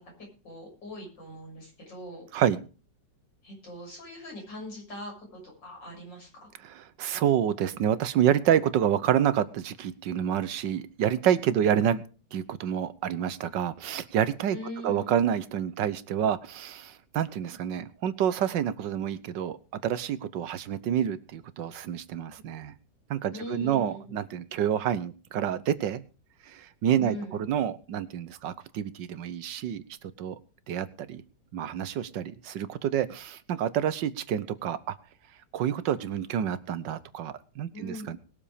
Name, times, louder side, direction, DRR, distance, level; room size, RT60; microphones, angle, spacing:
voice 1, 0.4-2.3 3.4-6.5 11.6-11.7 14.5-15.1 23.3-24.1 27.0-27.4 37.7-38.1, left 1 dB, 85° left, -1 dB, 7.7 m, -41 dB
voice 2, 6.6-12.0 12.3-14.6 14.8-19.6 19.8-22.7 23.1-26.0 26.5-29.8 30.2-30.4 30.7-31.2 31.5-35.0 35.5-38.2, right 9 dB, 80° right, 15 dB, 1.6 m, -28 dB
20.5 x 7.5 x 5.0 m, 0.35 s
omnidirectional pair, 1.9 m